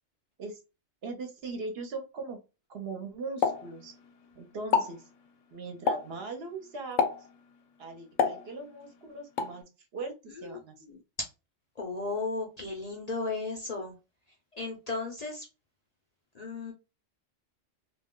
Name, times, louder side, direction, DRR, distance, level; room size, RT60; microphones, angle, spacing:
voice 1, 1.0-2.4 2.7-4.0 4.4-5.1 5.5-7.2 7.8-9.6 9.9-11.0, right 3 dB, 65° right, 5 dB, 0.8 m, -40 dB
Explosion, 3.4-4.3 4.6-5.0 5.9-6.2 7.0-7.4 8.2-8.9 9.4-9.6, left 6 dB, 90° left, 0.9 m, -28 dB
voice 2, 10.3-11.3 11.8-13.9 14.5-15.5 16.3-16.7, left 3 dB, 45° left, 0 dB, 0.6 m, -35 dB
2.3 x 2.1 x 3.6 m, 0.29 s
omnidirectional pair, 1.2 m